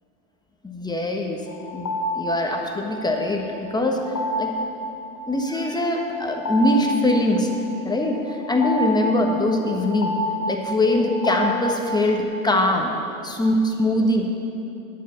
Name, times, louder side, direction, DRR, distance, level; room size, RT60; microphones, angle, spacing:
voice 1, 0.6-1.4 1.7-4.0 4.4-4.5 5.3-7.5 7.8-10.1 10.5-12.9 13.2-14.4, left 1 dB, 10° left, 1 dB, 1.3 m, -22 dB
sound 1, 1.5-12.2, equal, 85° left, 1.7 m, -30 dB
11.0 x 8.3 x 7.0 m, 2.7 s
hypercardioid pair, 110°, 44 cm